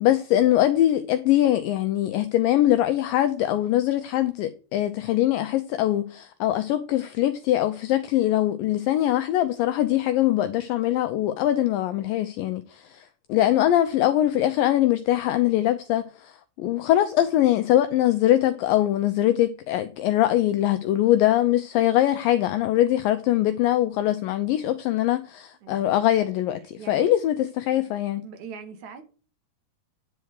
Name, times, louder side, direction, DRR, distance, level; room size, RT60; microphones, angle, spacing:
voice 1, 0.0-28.2, left 13 dB, 85° left, 2.0 m, -22 dB
voice 2, 26.8-27.1 28.2-29.1, right 6 dB, 70° right, 1.9 m, -41 dB
10.0 x 4.6 x 6.4 m
omnidirectional pair, 4.6 m